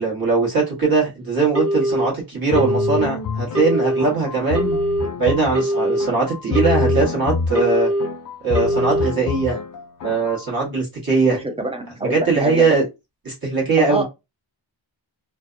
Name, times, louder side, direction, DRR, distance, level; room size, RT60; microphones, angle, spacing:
voice 1, 0.0-4.8 5.2-7.9 8.4-9.6 10.0-11.4 12.1-12.8 13.2-14.0, right 4 dB, 50° right, 1.3 m, -20 dB
Telephone, 1.5-2.1 2.5-3.1 3.5-4.1 4.5-5.1 5.5-6.1 6.5-7.1 7.5-8.1 8.5-9.1, equal, 30° right, 1.2 m, -21 dB
sound 1, 2.5-10.4, left 4 dB, 45° left, 0.5 m, -27 dB
voice 2, 11.2-12.7 13.8-14.0, right 2 dB, 15° right, 0.5 m, -26 dB
2.5 x 2.1 x 2.4 m
wide cardioid pair, 115°, 47 cm